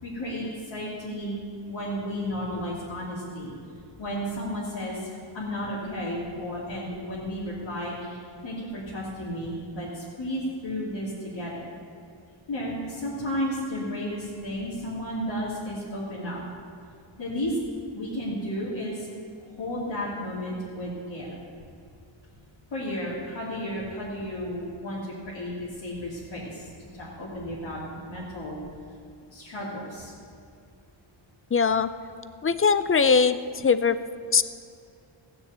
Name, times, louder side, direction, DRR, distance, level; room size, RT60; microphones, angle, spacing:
voice 1, 0.0-1.4 1.7-3.5 4.0-5.1 5.3-11.7 12.5-16.4 17.2-17.6 17.9-19.1 19.6-21.3 22.7-28.6 29.3-30.1, equal, 60° left, -8 dB, 2.8 m, -33 dB
voice 2, 31.5-31.9 32.4-34.0 34.3-34.4, left 5 dB, 30° left, 13 dB, 0.4 m, -21 dB
16.0 x 7.0 x 8.1 m, 2.4 s
wide cardioid pair, 160°, 50 cm